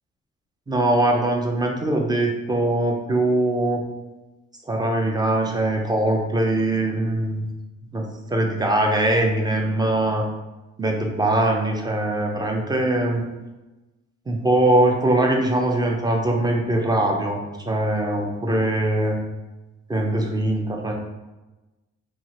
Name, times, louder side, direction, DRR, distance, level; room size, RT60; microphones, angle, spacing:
voice 1, 0.7-3.8 4.7-7.4 7.9-10.3 10.8-13.2 14.3-19.2 19.9-20.9, right 1 dB, 15° right, 1 dB, 0.5 m, -22 dB
2.8 x 2.4 x 2.9 m, 1.1 s
cardioid pair, 90°, 30 cm